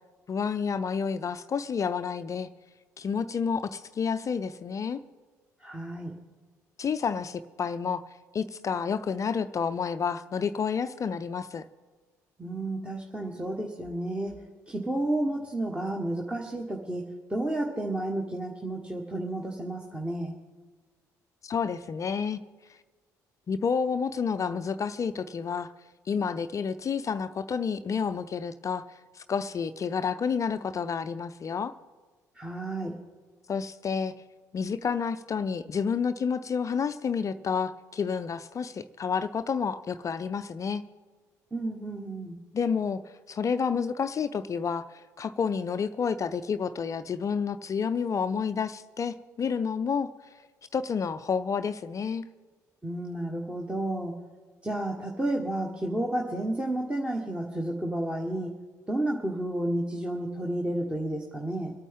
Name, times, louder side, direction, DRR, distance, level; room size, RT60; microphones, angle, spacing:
voice 1, 0.3-2.5 3.0-5.0 6.8-8.0 8.3-11.6 21.4-22.4 23.5-25.7 26.1-28.9 29.2-31.7 33.5-34.1 34.5-40.8 42.5-43.0 43.3-50.1 50.7-52.2, left 6 dB, 35° left, 12 dB, 0.5 m, -29 dB
voice 2, 5.6-6.1 12.4-14.4 14.7-17.0 17.3-20.3 32.3-32.9 41.5-42.4 52.8-54.1 54.6-58.5 58.9-61.7, right 1 dB, 10° right, 0 dB, 1.5 m, -31 dB
25.5 x 9.1 x 3.7 m, 1.4 s
figure-of-eight pair, 50°, 9 cm